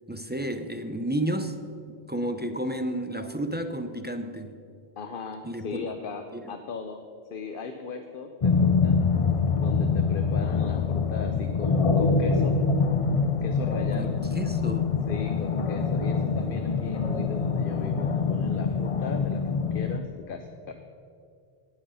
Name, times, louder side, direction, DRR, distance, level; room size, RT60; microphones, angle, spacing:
voice 1, 0.1-1.6 2.1-4.6 5.4-5.9 6.3-6.6 13.9-14.9, right 1 dB, 10° right, 7 dB, 0.6 m, -31 dB
voice 2, 5.0-9.0 9.6-12.6 13.4-14.2 15.1-19.4 19.7-20.7, left 5 dB, 60° left, 6 dB, 0.9 m, -38 dB
sound 1, 8.4-20.0, left 5 dB, 40° left, 0.7 m, -25 dB
18.5 x 8.3 x 5.6 m, 2.4 s
omnidirectional pair, 1.0 m